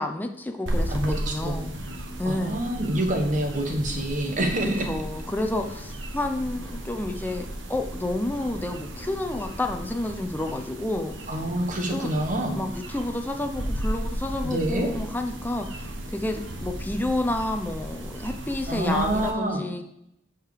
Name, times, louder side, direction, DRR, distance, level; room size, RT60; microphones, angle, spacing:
voice 1, 0.0-1.7 2.2-2.6 4.6-11.2 11.9-12.1 12.5-15.7 16.1-19.8, left 1 dB, 10° left, 5 dB, 0.6 m, -30 dB
sound 1, 0.7-19.3, right 1 dB, 90° right, 1.3 m, -35 dB
voice 2, 0.9-1.6 2.2-4.9 11.3-12.6 14.4-14.9 18.7-19.6, right 1 dB, 45° right, 4 dB, 1.4 m, -26 dB
10.0 x 4.7 x 5.0 m, 0.80 s
head